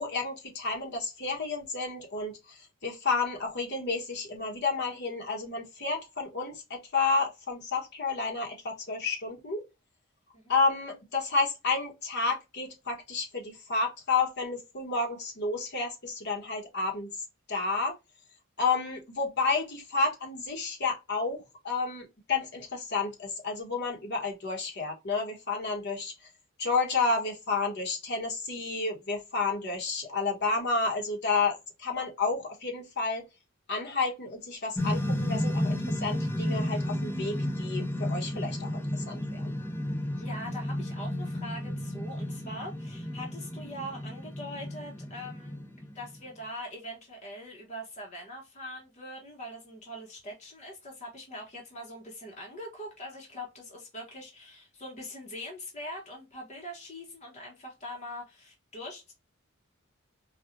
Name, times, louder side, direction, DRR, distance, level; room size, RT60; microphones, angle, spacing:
voice 1, 0.0-9.6 10.5-17.1 17.5-18.0 18.6-26.1 26.6-33.2 33.7-39.5, left 4 dB, 55° left, 1.1 m, -31 dB
sound 1, 34.8-46.2, left 1 dB, 10° left, 0.4 m, -32 dB
voice 2, 40.2-45.6 45.9-59.1, equal, 35° left, 0.9 m, -42 dB
4.2 x 2.3 x 2.5 m
head